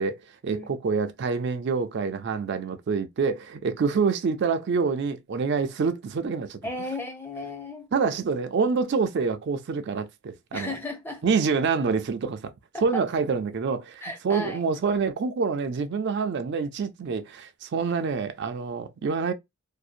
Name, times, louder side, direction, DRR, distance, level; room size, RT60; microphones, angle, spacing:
voice 1, 0.0-6.6 7.9-10.7 11.2-12.5 12.8-19.3, right 5 dB, 50° right, 0.4 m, -26 dB
voice 2, 6.6-7.9 10.5-11.2 12.7-13.0 14.0-14.6, left 1 dB, 10° left, 0.5 m, -34 dB
2.6 x 2.0 x 2.4 m
head